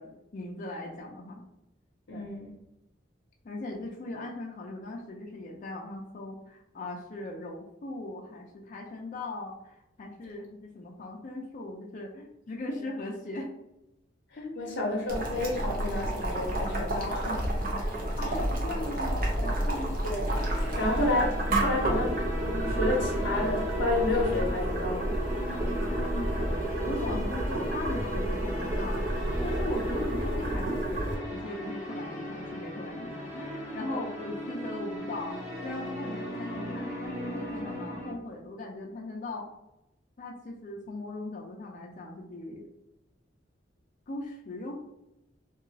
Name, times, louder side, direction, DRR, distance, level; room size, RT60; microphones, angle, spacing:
voice 1, 0.0-1.4 2.1-2.2 3.4-13.5 14.4-14.7 18.2-20.0 20.8-20.9 25.3-29.0 29.4-39.5 40.2-42.7 44.1-44.7, left 2 dB, 45° left, -1 dB, 0.4 m, -39 dB
voice 2, 2.1-2.5 14.3-17.4 17.8-17.9 20.0-20.3 20.8-25.2 27.1-27.3 33.9-34.0 36.5-36.9, left 2 dB, 85° left, -4 dB, 0.6 m, -31 dB
Boiling, 15.1-31.2, right 1 dB, 50° right, 0.6 m, -30 dB
sound 1, 20.2-38.1, equal, 15° right, 1.1 m, -37 dB
2.9 x 2.3 x 2.7 m, 0.87 s
head